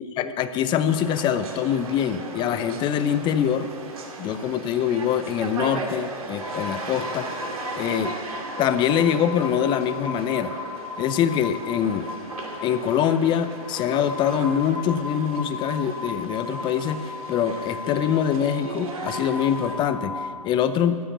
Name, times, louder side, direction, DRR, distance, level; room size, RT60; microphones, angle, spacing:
voice 1, 0.2-3.7 4.2-7.3 7.7-8.1 8.6-10.5 11.0-12.1 12.6-21.0, left 9 dB, 25° left, 12 dB, 0.7 m, -24 dB
sound 1, 0.9-19.8, right 3 dB, 75° right, 2.7 m, -37 dB
sound 2, 6.4-20.3, left 5 dB, 80° left, 2.6 m, -36 dB
14.0 x 9.9 x 7.3 m, 2.2 s
hypercardioid pair, 125°, 18 cm